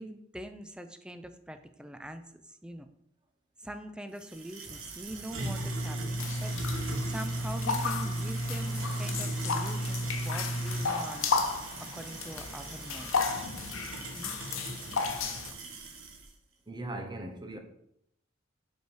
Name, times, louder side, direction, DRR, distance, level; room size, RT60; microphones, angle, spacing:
voice 1, 0.0-2.9 3.6-11.3 11.8-13.5 14.1-14.3, right 1 dB, 5° right, 0.4 m, -43 dB
sound 1, 4.2-16.2, right 1 dB, 80° right, 1.2 m, -36 dB
sound 2, 4.6-14.0, left 1 dB, 25° left, 2.4 m, -52 dB
sound 3, 6.2-15.5, left 4 dB, 85° left, 0.8 m, -34 dB
voice 2, 16.7-17.6, right 1 dB, 20° right, 0.8 m, -39 dB
5.4 x 4.6 x 4.8 m
head